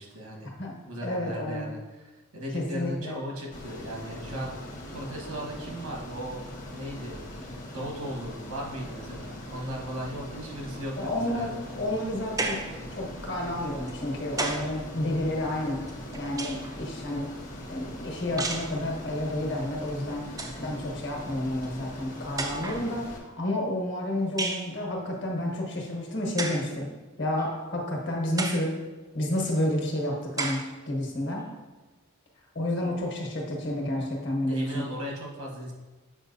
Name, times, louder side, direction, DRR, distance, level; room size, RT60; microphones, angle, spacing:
voice 1, 0.0-0.5 0.9-4.6 4.9-6.4 6.7-11.5 34.4-35.7, equal, 85° right, -1 dB, 1.3 m, -37 dB
voice 2, 1.0-1.7 2.5-3.2 11.0-12.6 12.9-15.8 16.2-17.3 17.7-20.3 20.6-26.9 27.2-28.7 29.1-31.4 32.5-34.8, left 1 dB, 55° left, -1 dB, 1.2 m, -30 dB
Ocean, 3.5-23.2, left 1 dB, 35° left, 0.9 m, -41 dB
sound 1, 12.4-12.8 13.9-14.8 15.9-16.8 18.4-18.8 19.9-20.0 20.3-20.6 21.6-21.7 22.4-22.9 24.4-24.7 26.4-26.7 27.4-27.5 28.4-28.7 29.4-29.5 30.4-30.7, right 3 dB, 15° right, 0.3 m, -32 dB
7.2 x 5.0 x 2.7 m, 1.2 s
head